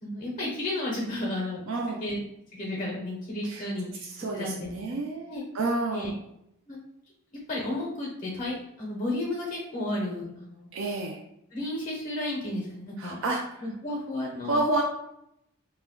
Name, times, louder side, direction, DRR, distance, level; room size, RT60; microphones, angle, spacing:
voice 1, 0.0-1.6 2.0-2.2 2.5-4.0 4.3-5.0 5.3-5.4 5.9-6.1 6.7-6.8 7.5-10.7 11.5-13.2 13.6-14.8, left 1 dB, 35° left, -3 dB, 0.5 m, -33 dB
voice 2, 1.7-2.0 3.4-3.7 4.0-6.2 10.7-11.2 13.0-13.6 14.4-14.8, right 2 dB, 60° right, 0 dB, 0.4 m, -30 dB
2.2 x 2.1 x 3.5 m, 0.78 s
head